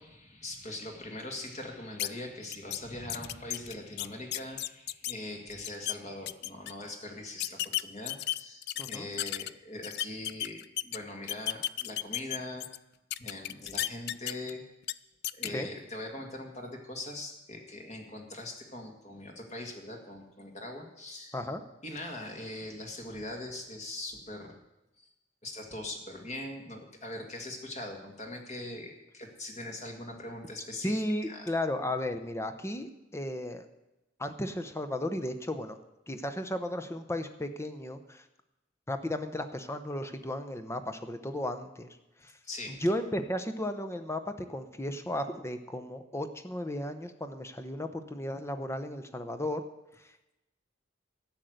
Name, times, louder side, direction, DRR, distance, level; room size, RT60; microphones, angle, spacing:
voice 1, 0.0-12.7 13.2-14.6 15.3-24.6 25.4-31.5 42.4-42.7, left 1 dB, 35° left, 2 dB, 2.1 m, -41 dB
sound 1, 2.0-2.1 2.5-2.8 3.1-5.1 5.5-5.9 6.3-6.7 7.4-9.5 9.8-11.0 11.3-12.8 13.1-14.5 14.8-14.9 15.2-15.5, left 14 dB, 55° left, 0.3 m, -33 dB
voice 2, 30.8-33.7 34.2-35.8 36.1-38.2 38.9-42.0 42.2-42.3 42.7-49.6, left 1 dB, 15° left, 8 dB, 0.8 m, -34 dB
13.0 x 6.6 x 9.2 m, 0.95 s
head